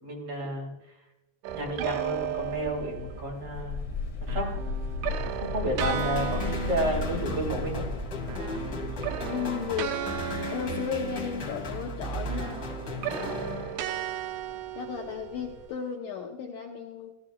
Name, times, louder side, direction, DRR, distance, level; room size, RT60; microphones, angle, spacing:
voice 1, 0.0-0.7 1.5-3.8 4.2-4.5 5.4-7.8, right 1 dB, 35° right, -2 dB, 3.6 m, -31 dB
sound 1, 1.4-3.3 4.3-8.0 8.2-11.9 12.3-15.7, right 10 dB, 85° right, 2.8 m, -36 dB
sound 2, 1.5-15.7, left 4 dB, 55° left, 1.9 m, -38 dB
sound 3, 5.8-14.1, left 2 dB, 40° left, 1.8 m, -36 dB
voice 2, 9.2-10.0 10.5-12.6 13.1-13.8 14.8-17.1, left 7 dB, 85° left, 1 dB, 1.8 m, -35 dB
16.5 x 13.5 x 2.3 m, 0.95 s
omnidirectional pair, 4.7 m